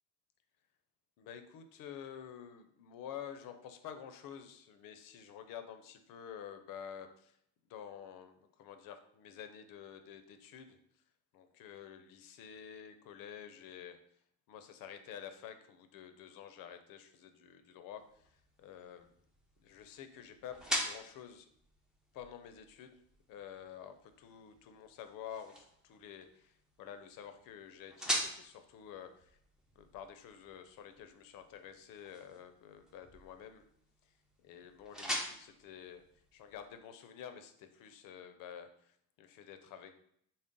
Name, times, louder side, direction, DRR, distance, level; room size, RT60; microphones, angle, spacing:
voice 1, 1.2-7.4 7.7-10.8 11.3-14.0 14.5-19.1 19.6-21.5 22.1-23.0 23.3-29.4 29.8-33.6 34.0-34.1 34.4-36.0 36.3-39.9, left 9 dB, 60° left, 9 dB, 0.5 m, -50 dB
sound 1, 18.0-36.8, equal, ahead, 0.4 m, -44 dB
3.8 x 2.0 x 3.7 m, 0.68 s
cardioid pair, 130°, 38 cm